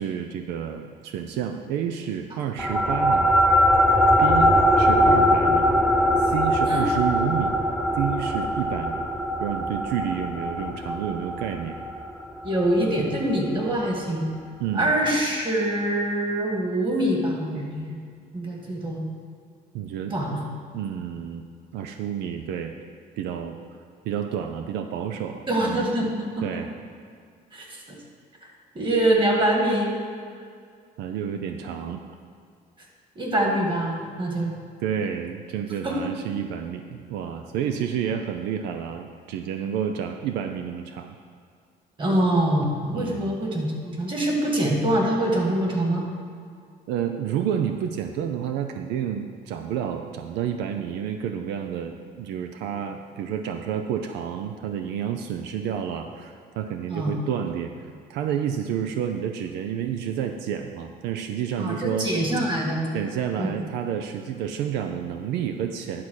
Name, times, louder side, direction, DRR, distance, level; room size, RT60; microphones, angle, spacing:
voice 1, 0.0-3.3 3.5-3.7 4.2-5.7 6.2-7.6 7.9-9.0 9.4-11.8 14.6-14.9 19.7-20.2 20.7-21.4 21.7-22.7 23.2-23.6 24.0-25.8 26.4-26.7 31.0-32.0 34.8-41.2 42.9-43.3 46.9-62.1 62.9-66.0, right 8 dB, 90° right, 6 dB, 0.5 m, -30 dB
sound 1, 2.6-13.4, equal, ahead, 0.5 m, -21 dB
voice 2, 12.4-14.3 14.7-18.0 18.3-19.0 20.1-20.4 25.5-26.6 27.5-27.8 28.8-29.9 33.2-34.5 35.8-36.1 42.0-46.0 56.9-57.2 61.6-62.9 63.4-63.6, right 1 dB, 30° right, -1 dB, 1.9 m, -24 dB
11.0 x 4.2 x 6.3 m, 2.2 s
cardioid pair, 110°, 17 cm